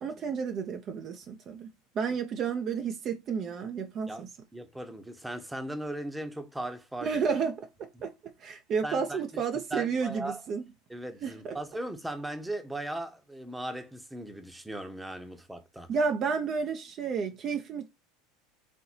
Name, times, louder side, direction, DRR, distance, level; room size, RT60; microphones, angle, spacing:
voice 1, 0.0-1.7 1.9-4.3 7.0-8.1 8.4-10.6 11.2-11.6 15.9-17.9, right 5 dB, 40° right, 0.7 m, -31 dB
voice 2, 4.5-7.2 8.8-9.4 9.7-10.4 10.9-15.9, right 1 dB, 5° right, 1.0 m, -38 dB
4.4 x 3.8 x 2.8 m
figure-of-eight pair, 75°, 0 cm